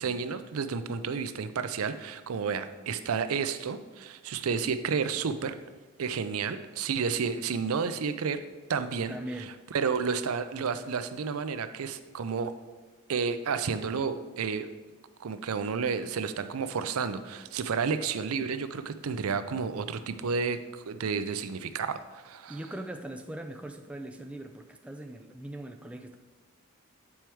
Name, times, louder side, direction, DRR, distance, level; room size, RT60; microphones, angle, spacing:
voice 1, 0.0-5.6 6.0-8.4 8.7-9.2 9.7-12.5 13.1-14.7 15.2-22.6, right 5 dB, 85° right, 11 dB, 0.5 m, -31 dB
voice 2, 9.1-9.5 22.5-26.2, right 1 dB, 5° right, 5 dB, 0.3 m, -40 dB
8.6 x 4.5 x 4.6 m, 1.3 s
head